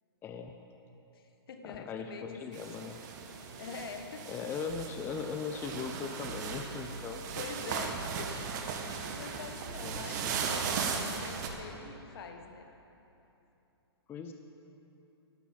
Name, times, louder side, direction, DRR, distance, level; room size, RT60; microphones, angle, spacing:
voice 1, 0.2-0.6 1.6-3.0 4.3-7.2 9.8-10.3 14.1-14.3, left 6 dB, 15° left, 5 dB, 0.6 m, -39 dB
voice 2, 1.1-2.6 3.6-4.2 7.3-8.5 8.8-12.7, left 4 dB, 60° left, 6 dB, 1.6 m, -45 dB
sound 1, 2.5-11.5, right 6 dB, 45° right, 1.7 m, -37 dB
sound 2, 4.7-5.6 6.2-7.6 8.0-9.0 9.7-11.6, right 3 dB, 75° right, 1.5 m, -47 dB
16.0 x 12.0 x 5.3 m, 3.0 s
hypercardioid pair, 135°, 14 cm